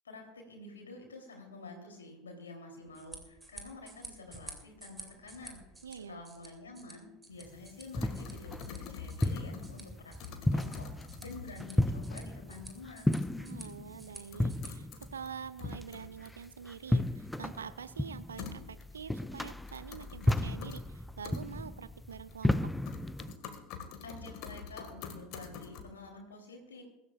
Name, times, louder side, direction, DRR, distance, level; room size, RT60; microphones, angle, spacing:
voice 1, 0.0-5.6 5.9-13.2 24.0-26.8, left 2 dB, 75° left, 2 dB, 3.4 m, -49 dB
sound 1, 2.8-14.7, right 2 dB, 15° right, 2.9 m, -52 dB
voice 2, 5.8-6.2 13.4-22.7, right 7 dB, 75° right, 15 dB, 0.5 m, -46 dB
sound 2, 7.5-23.4, left 1 dB, 5° left, 0.6 m, -34 dB
sound 3, 7.9-9.8 10.2-11.7 13.2-13.3 13.6-13.7 14.3-15.3 15.6-16.4 18.4-19.0 19.7-20.8 21.2-21.4 22.1-22.6 22.9-25.8, left 6 dB, 50° left, 1.8 m, -45 dB
23.0 x 13.0 x 2.5 m, 1.0 s
figure-of-eight pair, 70°, 0 cm